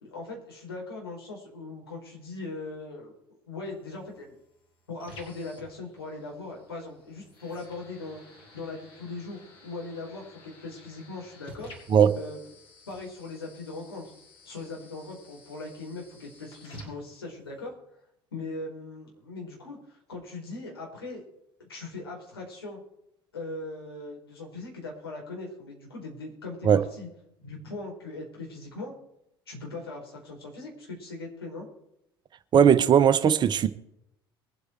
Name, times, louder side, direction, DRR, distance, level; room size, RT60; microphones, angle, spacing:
voice 1, 0.0-4.3 4.9-8.2 8.5-11.7 12.1-12.4 12.9-14.0 14.4-17.7 18.3-21.2 21.7-22.8 23.3-27.1 27.4-28.9 29.5-31.7, left 3 dB, 80° left, 4.5 m, -40 dB
sound 1, 3.7-17.7, left 1 dB, 40° left, 5.9 m, -52 dB
voice 2, 32.5-33.7, right 8 dB, 35° right, 1.0 m, -18 dB
22.0 x 8.3 x 4.5 m
figure-of-eight pair, 65°, 13 cm